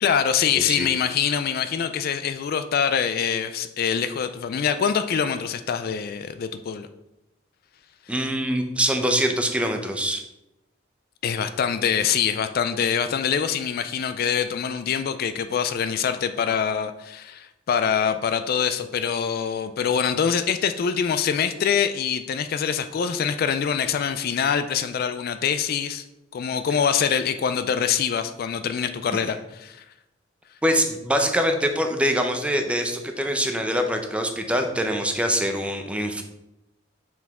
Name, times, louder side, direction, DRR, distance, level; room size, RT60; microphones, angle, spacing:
voice 1, 0.0-6.9 11.2-26.0 26.3-29.8, left 7 dB, 50° left, 10 dB, 0.3 m, -24 dB
voice 2, 0.5-0.9 8.1-10.2 30.6-36.2, equal, 5° right, 5 dB, 0.6 m, -24 dB
5.8 x 4.8 x 3.5 m, 0.90 s
head